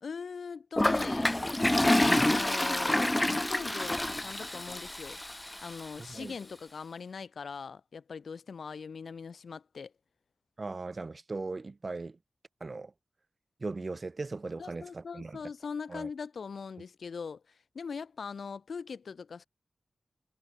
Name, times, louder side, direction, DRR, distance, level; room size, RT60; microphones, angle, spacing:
voice 1, 0.0-5.2 5.6-9.9 14.6-19.5, left 5 dB, 80° left, 1.5 m, -41 dB
Toilet flush, 0.8-5.8, left 1 dB, 20° left, 1.6 m, -28 dB
voice 2, 6.0-6.3 10.6-12.2 12.6-12.9 13.6-15.4 15.9-16.1, right 3 dB, 45° right, 2.9 m, -38 dB
cardioid pair, 60°, 0 cm